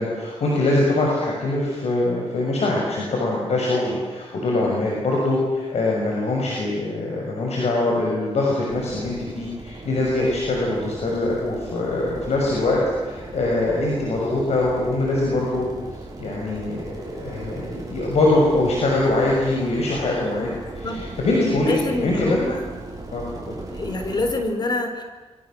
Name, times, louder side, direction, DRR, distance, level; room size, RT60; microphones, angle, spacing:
voice 1, 0.0-15.7 16.2-20.5 20.8-21.7 22.0-22.4 23.1-23.5, left 2 dB, 75° left, -2 dB, 6.4 m, -23 dB
sound 1, 8.7-24.4, right 2 dB, 35° right, 6.8 m, -38 dB
voice 2, 21.6-22.7 23.7-25.0, left 2 dB, 40° left, 6 dB, 4.1 m, -26 dB
27.5 x 23.5 x 7.8 m, 1.2 s
cardioid pair, 95°, 11 cm